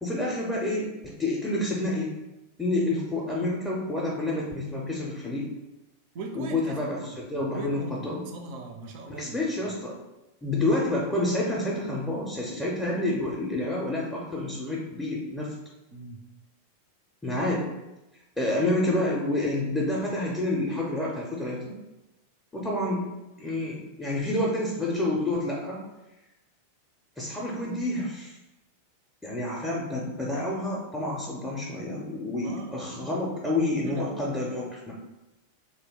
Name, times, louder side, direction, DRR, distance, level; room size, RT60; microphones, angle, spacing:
voice 1, 0.0-2.1 2.6-5.5 6.3-8.2 9.1-10.0 10.4-15.5 17.2-17.7 18.4-21.7 22.5-23.0 23.4-25.8 27.2-28.3 29.2-34.9, left 2 dB, 10° left, -5 dB, 0.5 m, -29 dB
voice 2, 6.1-9.5 15.9-16.2 32.4-33.1 33.9-34.3, right 3 dB, 45° right, 4 dB, 0.4 m, -41 dB
2.8 x 2.1 x 3.3 m, 0.99 s
figure-of-eight pair, 90°, 0 cm